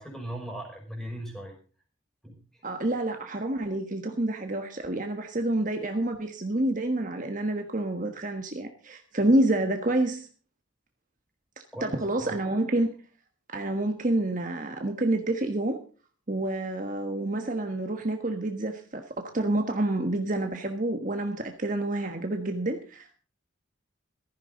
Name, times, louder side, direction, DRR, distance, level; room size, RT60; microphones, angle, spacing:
voice 1, 0.0-1.6 2.2-2.6 11.7-12.3, right 1 dB, ahead, 2 dB, 5.4 m, -39 dB
voice 2, 2.6-10.3 11.8-12.9 13.5-15.8 16.3-23.2, right 1 dB, 40° right, 5 dB, 1.4 m, -28 dB
16.0 x 14.0 x 3.9 m, 0.38 s
head